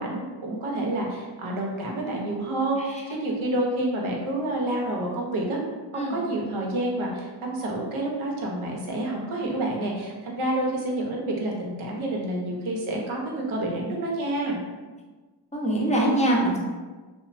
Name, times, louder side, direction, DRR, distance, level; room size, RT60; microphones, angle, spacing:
voice 1, 0.0-5.6 5.9-14.6, right 1 dB, 75° right, -1 dB, 0.7 m, -28 dB
voice 2, 15.5-16.6, right 1 dB, 15° left, -3 dB, 0.6 m, -23 dB
2.9 x 2.0 x 2.5 m, 1.3 s
cardioid pair, 75°, 49 cm